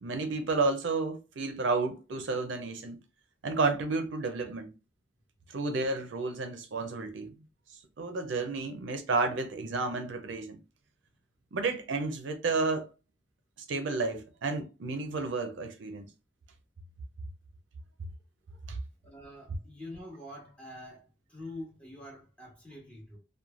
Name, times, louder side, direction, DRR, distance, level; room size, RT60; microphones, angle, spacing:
voice 1, 0.0-3.0 3.4-4.7 5.5-7.3 8.0-10.6 11.5-12.9 13.7-16.1 18.7-18.8, right 3 dB, 70° right, 0.5 m, -31 dB
voice 2, 19.0-23.2, left 1 dB, 5° left, 1.1 m, -45 dB
3.0 x 2.2 x 2.3 m
head